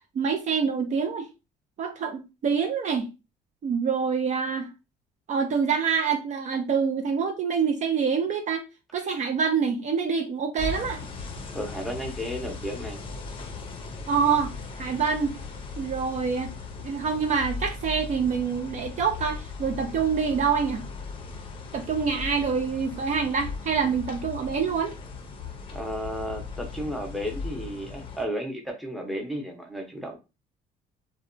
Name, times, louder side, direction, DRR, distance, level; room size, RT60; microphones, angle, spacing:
voice 1, 0.1-1.3 1.8-3.1 3.6-4.7 5.3-8.7 8.9-11.0 14.1-14.5 14.8-15.3 15.8-16.5 16.8-20.8 21.7-24.9, right 6 dB, 45° right, 0.4 m, -26 dB
sound 1, 10.6-28.2, left 4 dB, 30° left, 0.5 m, -38 dB
voice 2, 11.5-13.0 25.7-30.2, equal, ahead, 0.7 m, -33 dB
2.7 x 2.1 x 2.5 m
cardioid pair, 110°, 17 cm